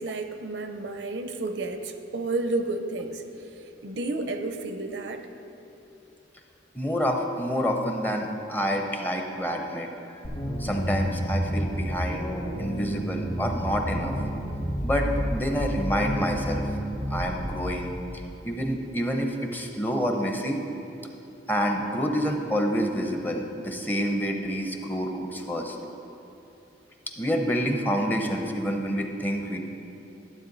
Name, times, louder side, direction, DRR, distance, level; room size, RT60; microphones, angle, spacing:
voice 1, 0.0-3.2 3.8-5.3, right 2 dB, 75° right, 7 dB, 0.6 m, -31 dB
voice 2, 6.7-10.2 10.6-12.3 12.6-14.1 14.8-16.7 17.1-20.6 21.5-25.8 27.2-29.6, equal, 10° left, 3 dB, 0.7 m, -28 dB
sound 1, 10.2-17.6, equal, 45° left, 1.6 m, -30 dB
12.5 x 7.8 x 3.9 m, 2.8 s
head